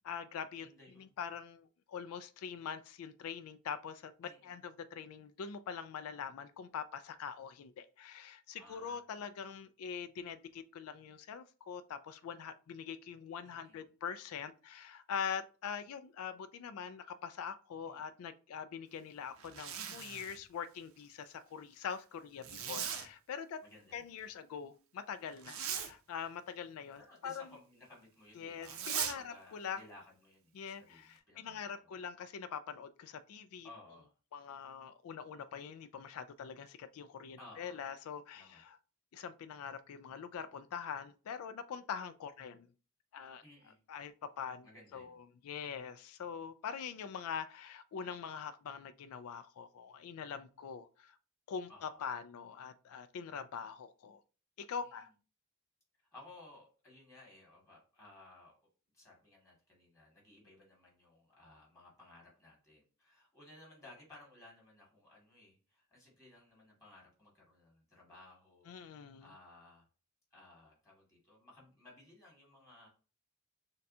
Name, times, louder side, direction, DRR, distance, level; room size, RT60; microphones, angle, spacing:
voice 1, 0.0-0.7 1.0-23.6 23.9-27.5 28.4-29.8 30.5-33.7 34.3-38.8 39.1-42.7 43.1-43.4 43.9-51.2 51.5-54.2 54.6-55.1 68.7-69.3, left 7 dB, 75° left, 11 dB, 0.3 m, -43 dB
voice 2, 0.6-1.1 4.2-4.6 8.6-9.0 13.4-13.9 17.9-18.0 23.6-24.0 25.4-25.8 27.0-32.0 33.6-34.1 37.4-37.8 38.3-38.6 43.4-43.8 44.6-45.2 51.7-52.0 54.8-55.0 56.1-58.6 58.9-69.9 70.3-72.9, left 2 dB, 15° left, -4 dB, 1.9 m, -58 dB
Zipper (clothing), 19.4-20.4 22.4-23.1 25.4-25.9 28.6-29.2, right 8 dB, 65° right, 0.6 m, -39 dB
6.4 x 2.3 x 2.7 m, 0.35 s
head